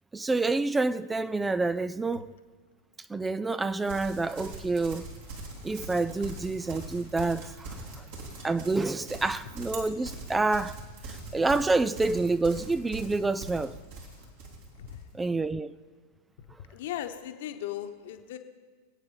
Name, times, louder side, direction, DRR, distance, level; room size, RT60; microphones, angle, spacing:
voice 1, 0.1-2.3 3.1-5.1 5.6-8.1 8.4-10.8 11.1-13.8 15.1-15.7, right 3 dB, 10° right, 0.3 m, -28 dB
Livestock farm animals working animals, 3.8-15.0, right 2 dB, 55° right, 2.7 m, -42 dB
voice 2, 16.7-18.4, left 11 dB, 60° left, 1.2 m, -37 dB
25.0 x 8.7 x 3.8 m
figure-of-eight pair, 95°, 0 cm